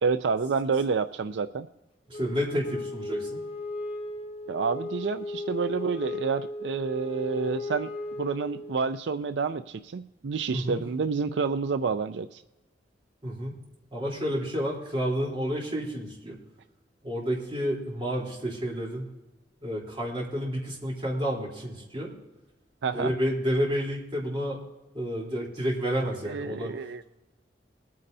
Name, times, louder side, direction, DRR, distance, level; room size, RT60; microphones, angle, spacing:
voice 1, 0.0-1.7 4.5-7.9 8.2-12.4 22.8-23.1 26.2-27.0, right 5 dB, 80° right, 11 dB, 0.4 m, -29 dB
Wind instrument woodwind instrument, 2.1-8.9, left 2 dB, 30° left, 1.1 m, -36 dB
voice 2, 2.1-3.4 10.5-10.8 13.2-13.6 13.9-16.4 17.0-19.0 19.6-22.1 22.9-24.6 24.9-26.7, equal, 30° right, -4 dB, 3.5 m, -30 dB
22.0 x 9.5 x 2.7 m, 1.0 s
head